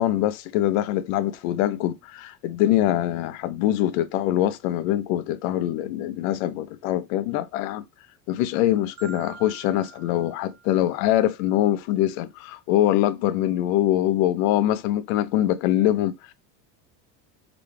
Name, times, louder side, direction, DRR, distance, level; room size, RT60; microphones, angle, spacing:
voice 1, 0.0-7.8 8.3-16.3, left 13 dB, 85° left, 0.6 m, -23 dB
Marimba xylophone, 9.0-11.2, right 6 dB, 55° right, 1.1 m, -46 dB
4.0 x 2.3 x 3.1 m
cardioid pair, 145°, 39 cm